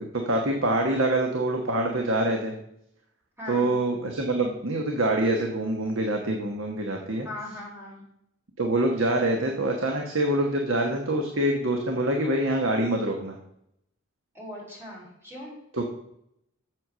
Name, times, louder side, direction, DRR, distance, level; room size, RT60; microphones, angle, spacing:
voice 1, 0.0-2.5 3.5-7.3 8.6-13.4 15.7-15.8, right 1 dB, 70° right, 2 dB, 1.3 m, -25 dB
voice 2, 3.4-3.7 7.2-8.0 14.3-15.5, left 1 dB, 10° right, -4 dB, 4.3 m, -39 dB
7.8 x 7.3 x 6.2 m, 0.77 s
head